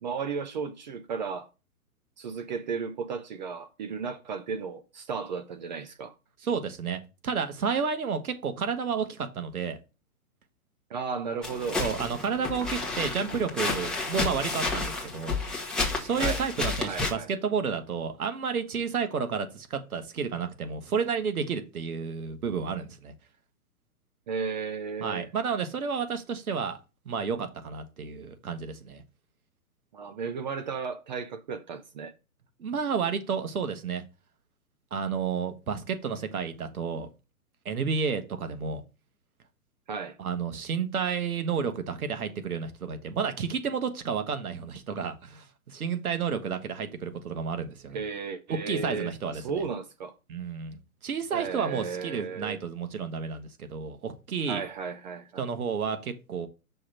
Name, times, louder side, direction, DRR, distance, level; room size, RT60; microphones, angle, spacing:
voice 1, 0.0-1.5 2.2-6.1 10.9-11.9 16.2-16.4 16.8-17.3 24.3-25.3 29.9-32.1 39.9-40.2 47.9-50.1 51.3-52.6 54.5-55.5, right 5 dB, 30° right, 0.5 m, -34 dB
voice 2, 6.4-9.8 11.8-15.4 16.0-23.1 25.0-26.8 27.0-29.0 32.6-34.0 34.9-37.1 37.6-38.8 40.2-48.0 48.5-49.6 50.3-54.6 55.4-56.5, right 6 dB, 75° right, 1.5 m, -31 dB
sound 1, 11.4-17.1, left 3 dB, ahead, 1.1 m, -31 dB
6.2 x 3.4 x 5.9 m
hypercardioid pair, 130°, 44 cm